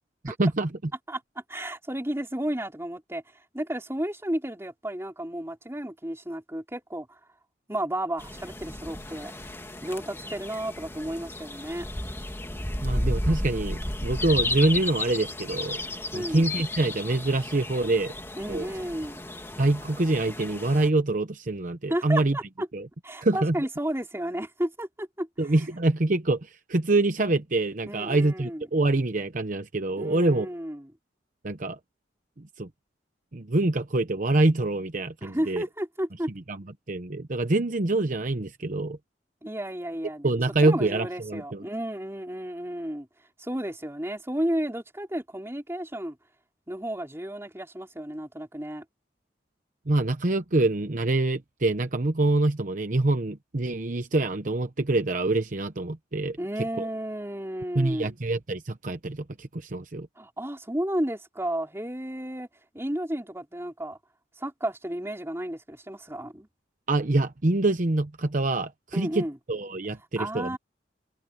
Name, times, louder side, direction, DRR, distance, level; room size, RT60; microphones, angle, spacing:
voice 1, 0.2-0.7 12.8-15.8 16.1-18.1 18.5-18.7 19.6-22.4 22.7-22.9 23.2-23.6 25.4-30.5 31.4-31.8 32.6-32.7 33.3-35.6 36.9-39.0 40.2-41.6 49.9-56.4 56.8-56.9 57.7-60.1 66.9-70.6, right 2 dB, 45° right, 0.9 m, -25 dB
voice 2, 1.5-3.2 3.5-7.1 7.7-9.3 9.8-11.9 16.1-16.5 18.4-19.2 21.9-22.7 23.0-25.5 27.9-28.7 30.0-30.9 35.2-36.3 39.4-40.3 40.6-43.1 43.4-46.2 46.7-48.8 56.4-58.1 60.2-62.5 62.7-64.0 64.4-66.5 68.9-69.4 70.2-70.6, right 1 dB, 15° right, 4.1 m, -32 dB
sound 1, 8.2-20.9, left 1 dB, 15° left, 2.3 m, -33 dB
head